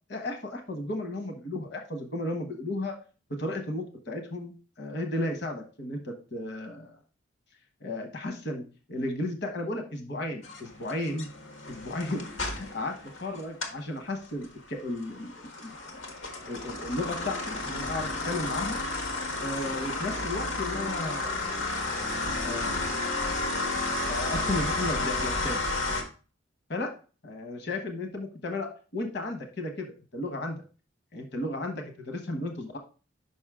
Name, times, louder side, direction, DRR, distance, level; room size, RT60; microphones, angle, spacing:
voice 1, 0.1-2.9 3.4-6.9 7.8-11.3 11.7-15.7 16.5-18.8 19.4-21.4 22.4-22.9 23.5-25.6 26.7-26.9 27.2-30.6 31.1-32.8, left 2 dB, 60° left, 4 dB, 1.2 m, -34 dB
sound 1, 10.4-13.8 14.2-26.0, left 2 dB, 85° left, 1.5 m, -32 dB
6.2 x 5.5 x 3.6 m, 0.36 s
head